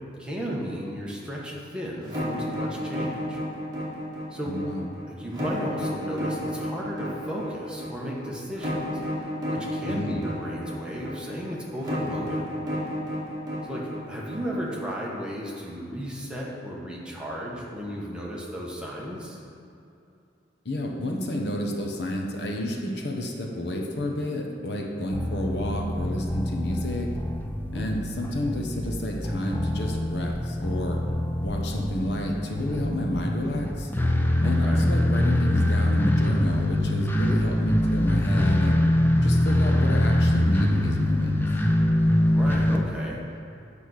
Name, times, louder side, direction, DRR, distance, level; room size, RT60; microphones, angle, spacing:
voice 1, 0.0-3.4 4.3-4.5 5.2-12.6 13.7-13.8 14.1-19.4 27.7-27.8 34.4-34.8 42.3-43.2, equal, 5° right, -5 dB, 1.2 m, -34 dB
sound 1, 2.0-14.9, equal, 20° right, 2.1 m, -32 dB
voice 2, 4.4-4.9 9.9-10.3 20.6-27.1 27.7-31.0 31.4-33.9 34.4-38.8 39.2-41.4, left 1 dB, 65° left, 1 dB, 1.0 m, -30 dB
sound 2, 25.1-42.8, left 1 dB, 10° left, 0.5 m, -24 dB
8.5 x 5.4 x 6.4 m, 2.6 s
head